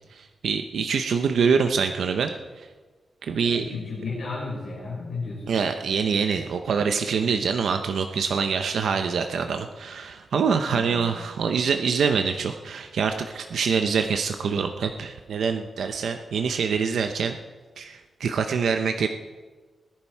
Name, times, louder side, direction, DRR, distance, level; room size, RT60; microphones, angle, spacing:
voice 1, 0.1-2.3 2.6-2.7 3.2-3.8 5.5-17.4 17.8-19.1, right 6 dB, 85° right, 6 dB, 0.8 m, -25 dB
voice 2, 3.4-5.6 10.6-11.1, left 3 dB, 60° left, -5 dB, 5.1 m, -33 dB
19.0 x 10.5 x 4.6 m, 1.4 s
wide cardioid pair, 120°, 0 cm